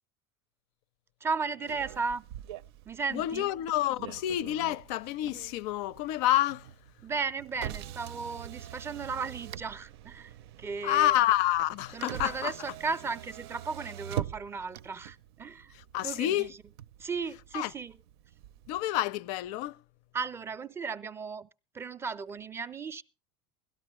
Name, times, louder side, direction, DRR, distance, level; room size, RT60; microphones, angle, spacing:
voice 1, 1.2-2.3 2.9-3.5 7.0-11.2 11.9-15.7 16.0-16.6 17.0-18.0 20.1-21.5 21.7-23.0, right 5 dB, 20° right, 0.6 m, -35 dB
Motor vehicle (road), 1.7-18.8, right 12 dB, 80° right, 0.5 m, -44 dB
voice 2, 3.1-6.7 10.8-12.5 15.9-16.5 17.5-17.7 18.7-19.8, left 14 dB, 60° left, 0.6 m, -28 dB
17.0 x 13.0 x 3.2 m
supercardioid pair, 135°, 13 cm